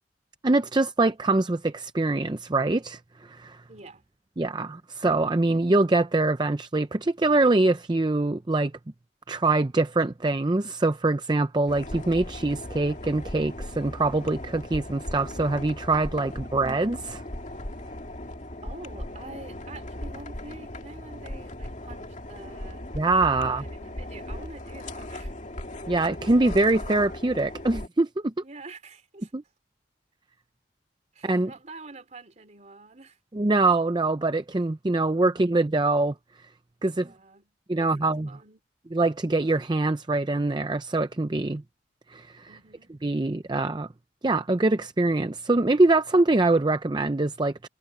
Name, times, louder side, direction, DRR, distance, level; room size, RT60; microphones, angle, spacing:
voice 1, 0.4-3.0 3.3-3.6 4.4-8.7 9.3-17.2 22.9-23.6 25.9-28.3 29.3-29.4 31.2-31.5 33.3-36.1 36.8-37.1 37.7-38.3 38.9-41.6 42.1-42.5 43.0-43.9 44.2-47.7, right 2 dB, 25° right, 0.5 m, -24 dB
voice 2, 3.7-4.0 16.3-16.7 18.6-22.9 23.3-25.3 28.4-29.3 31.1-33.2 36.8-38.6 42.5-42.9, right 3 dB, 40° right, 3.3 m, -47 dB
sound 1, 11.7-27.9, left 1 dB, 40° left, 2.3 m, -38 dB
head